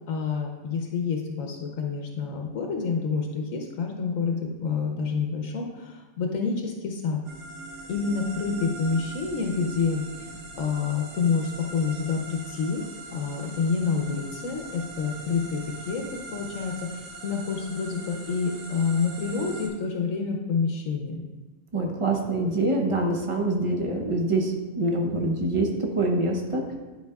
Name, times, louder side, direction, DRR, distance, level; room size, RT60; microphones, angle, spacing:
voice 1, 0.1-7.2 7.9-10.3 10.6-12.8 13.1-21.2, left 5 dB, 80° left, 2 dB, 1.1 m, -28 dB
sound 1, 7.3-19.7, right 3 dB, 75° right, 1.2 m, -42 dB
voice 2, 21.7-26.7, right 2 dB, 30° right, 1 dB, 0.6 m, -25 dB
10.5 x 4.7 x 2.3 m, 1.2 s
omnidirectional pair, 1.4 m